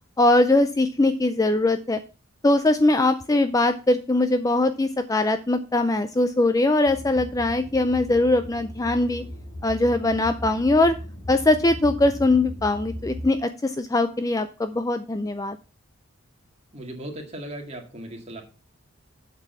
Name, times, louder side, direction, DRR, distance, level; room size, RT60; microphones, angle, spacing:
voice 1, 0.2-2.0 2.4-9.2 9.6-10.9 11.3-15.6, left 2 dB, 15° left, 10 dB, 0.4 m, -21 dB
sound 1, 6.9-13.2, left 1 dB, 55° left, 3.7 m, -37 dB
voice 2, 16.7-18.4, right 1 dB, 30° right, 2 dB, 2.0 m, -37 dB
8.1 x 6.1 x 5.6 m, 0.33 s
head